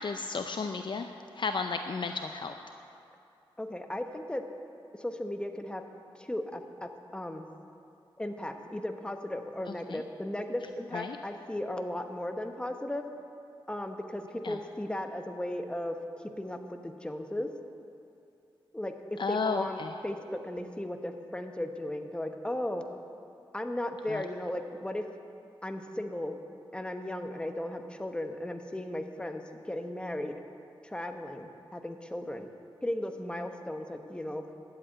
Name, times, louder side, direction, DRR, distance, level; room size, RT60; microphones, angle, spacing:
voice 1, 0.0-2.6 9.9-10.0 10.9-11.2 14.4-14.6 19.2-19.9 24.1-24.2, left 4 dB, 55° left, 6 dB, 0.5 m, -33 dB
voice 2, 3.6-4.4 5.0-5.8 6.1-7.5 8.2-13.0 13.7-17.5 18.7-22.8 23.5-25.0 25.6-26.4 26.7-30.3 30.8-32.5 32.8-34.4, left 1 dB, 10° left, 5 dB, 1.0 m, -36 dB
12.0 x 7.9 x 8.9 m, 2.6 s
wide cardioid pair, 90°, 10 cm